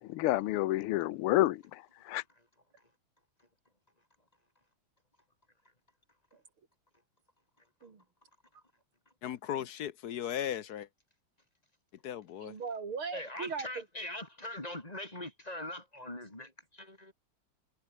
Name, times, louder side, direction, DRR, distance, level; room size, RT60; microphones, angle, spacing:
voice 1, 0.0-2.2, left 16 dB, 90° left, 1.6 m, -30 dB
voice 2, 9.2-10.9 12.0-12.5, left 10 dB, 60° left, 1.1 m, -37 dB
voice 3, 12.4-13.7, right 5 dB, 75° right, 4.1 m, -38 dB
voice 4, 13.1-17.1, left 1 dB, 15° left, 3.7 m, -42 dB
omnidirectional pair, 2.3 m